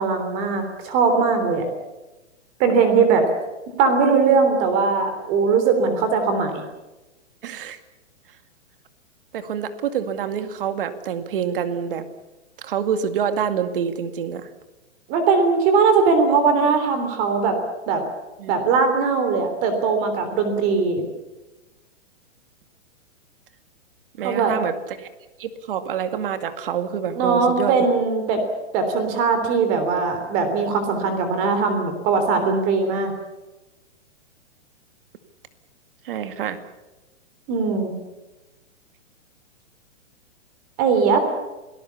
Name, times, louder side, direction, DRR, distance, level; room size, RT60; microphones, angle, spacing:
voice 1, 0.0-1.6 2.6-3.2 3.8-6.6 15.1-17.5 17.9-18.0 18.5-21.0 24.2-24.5 27.1-28.4 28.7-33.1 37.5-37.9 40.8-41.2, right 5 dB, 25° right, 7 dB, 3.3 m, -20 dB
voice 2, 7.4-7.8 9.3-12.1 12.6-14.5 18.4-18.5 24.2-25.1 25.4-27.8 36.0-36.6, right 8 dB, 45° right, 10 dB, 2.2 m, -27 dB
28.0 x 19.0 x 7.1 m, 1.1 s
hypercardioid pair, 175°, 36 cm